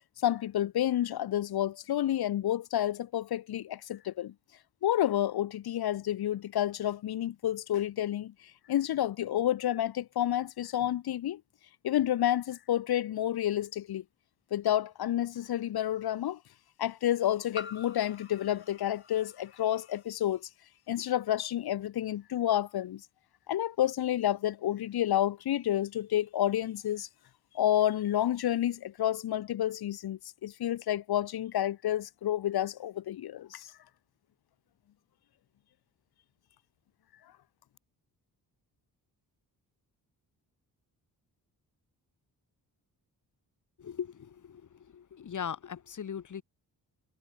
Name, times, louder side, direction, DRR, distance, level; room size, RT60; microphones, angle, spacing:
voice 1, 0.2-4.3 4.8-8.3 8.7-11.4 11.8-14.0 14.5-16.4 16.8-20.5 20.9-23.0 23.5-27.1 27.5-33.7, left 12 dB, 85° left, 1.2 m, -30 dB
sound 1, 13.6-13.7 15.3-15.4 17.5-20.0, left 5 dB, 30° left, 3.6 m, -47 dB
voice 2, 43.8-46.4, left 8 dB, 55° left, 4.3 m, -39 dB
wide cardioid pair, 160°, 37 cm